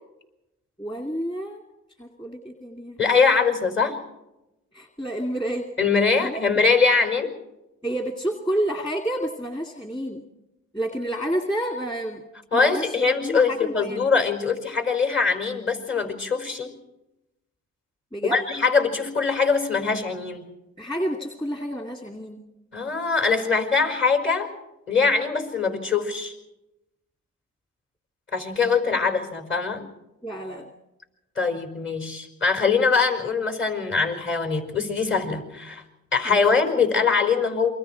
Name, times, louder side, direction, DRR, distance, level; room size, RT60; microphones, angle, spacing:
voice 1, 0.8-1.6 2.0-3.0 4.7-5.7 6.1-6.4 7.8-10.2 10.7-12.2 12.5-14.1 18.1-18.4 20.8-22.4 30.2-30.7 36.3-36.4, right 1 dB, 15° left, 3 dB, 2.5 m, -29 dB
voice 2, 3.0-4.0 5.8-7.3 12.5-16.8 18.2-20.5 22.7-24.5 24.9-26.3 28.3-29.9 31.3-35.8 36.1-37.7, left 5 dB, 40° left, 6 dB, 5.2 m, -22 dB
28.0 x 23.5 x 4.6 m, 0.93 s
cardioid pair, 90°, 30 cm